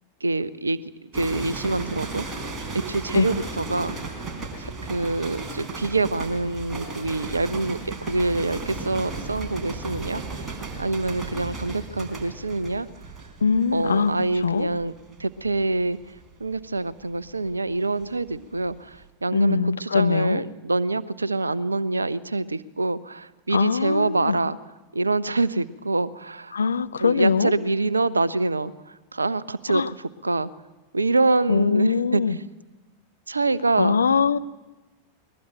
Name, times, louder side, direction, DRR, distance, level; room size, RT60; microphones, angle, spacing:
voice 1, 0.2-2.4 2.7-4.3 4.6-12.9 13.7-14.9 15.2-16.0 16.4-24.6 24.9-26.6 27.0-30.5 30.9-32.5 33.3-34.0, right 2 dB, 80° right, 18 dB, 0.8 m, -26 dB
sound 1, 1.1-18.4 18.6-19.1, right 3 dB, 20° right, 4.2 m, -35 dB
voice 2, 13.4-14.1 14.4-14.7 19.3-20.4 23.5-24.4 26.5-27.5 29.7-29.9 31.5-32.4 33.8-34.4, left 5 dB, 70° left, 12 dB, 0.8 m, -22 dB
21.5 x 20.5 x 9.0 m, 1.1 s
figure-of-eight pair, 90°, 0 cm